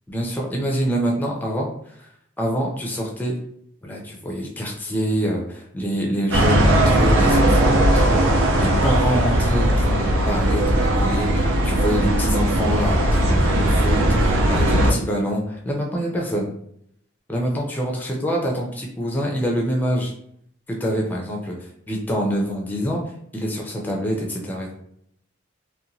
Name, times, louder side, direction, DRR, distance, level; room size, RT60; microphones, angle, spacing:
voice 1, 0.1-2.1 2.4-3.3 3.8-16.5 17.3-20.1 20.7-23.0 23.3-24.7, equal, 10° left, -1 dB, 0.4 m, -26 dB
sound 1, 6.3-14.9, right 1 dB, 75° right, 0.5 m, -18 dB
2.8 x 2.1 x 2.6 m, 0.70 s
head